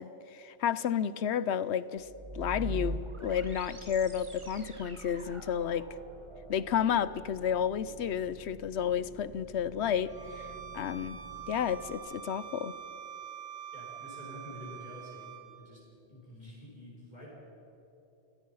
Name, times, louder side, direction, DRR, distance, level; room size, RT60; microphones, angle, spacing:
voice 1, 0.0-2.1 2.3-5.9 6.5-11.2 11.5-12.7, left 8 dB, 85° left, 16 dB, 1.0 m, -31 dB
sound 1, 2.0-12.0, right 1 dB, 30° right, 1.3 m, -44 dB
Bowed string instrument, 10.1-15.5, right 9 dB, 60° right, 5.9 m, -45 dB
voice 2, 13.7-15.8 16.1-17.3, equal, 40° left, -6 dB, 6.1 m, -48 dB
29.0 x 18.5 x 5.6 m, 3.0 s
omnidirectional pair, 1.1 m